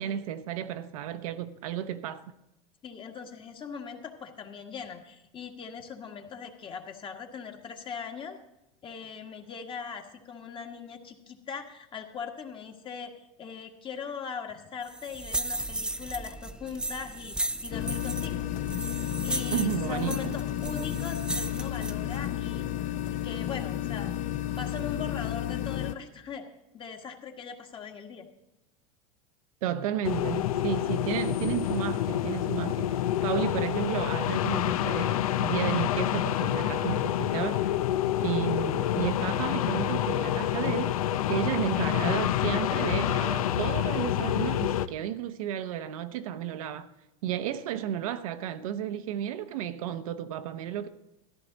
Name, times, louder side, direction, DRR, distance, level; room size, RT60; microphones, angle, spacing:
voice 1, 0.0-2.2 19.5-20.3 29.6-37.8 38.2-41.0 41.3-46.9 47.2-50.9, right 10 dB, 80° right, 0.9 m, -33 dB
voice 2, 2.8-8.4 8.8-18.5 19.2-22.6 23.1-24.1 24.6-26.4 26.7-28.3, left 6 dB, 30° left, 1.6 m, -40 dB
sound 1, 14.8-22.3, right 1 dB, 5° right, 0.5 m, -35 dB
sound 2, 17.7-25.9, left 12 dB, 45° left, 0.7 m, -32 dB
sound 3, 30.0-44.9, left 12 dB, 90° left, 0.5 m, -28 dB
14.0 x 11.5 x 4.0 m
supercardioid pair, 115°, 18 cm